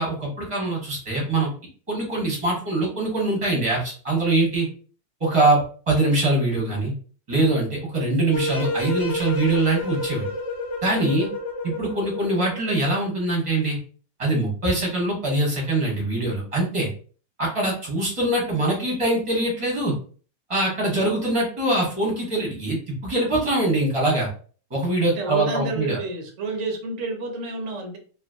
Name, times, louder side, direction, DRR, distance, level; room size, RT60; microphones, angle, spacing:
voice 1, 0.0-1.5 1.9-4.7 5.2-5.6 5.9-6.9 7.3-10.3 10.8-11.3 11.6-13.8 14.2-16.9 17.4-19.9 20.5-24.3 24.7-26.0, right 2 dB, 20° right, -3 dB, 1.1 m, -23 dB
sound 1, 8.3-12.6, left 2 dB, 65° left, 1.4 m, -30 dB
voice 2, 25.0-28.0, right 3 dB, 55° right, 2 dB, 0.8 m, -30 dB
3.2 x 3.0 x 2.5 m, 0.42 s
omnidirectional pair, 2.3 m